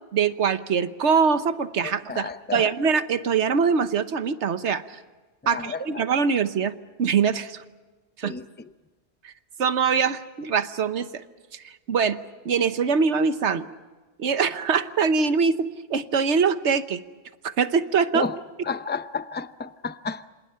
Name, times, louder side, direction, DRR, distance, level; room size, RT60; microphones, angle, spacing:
voice 1, 0.1-5.0 5.5-6.7 7.0-7.6 8.2-8.3 9.2-9.3 9.6-11.2 11.5-12.2 12.4-13.7 14.2-17.0 17.4-18.3, right 6 dB, 75° right, 11 dB, 1.3 m, -23 dB
voice 2, 1.8-2.7 5.4-5.8 8.2-8.4 18.1-18.4 18.7-20.3, left 5 dB, 10° left, 11 dB, 0.5 m, -31 dB
27.5 x 27.0 x 5.7 m, 1.3 s
omnidirectional pair, 1.2 m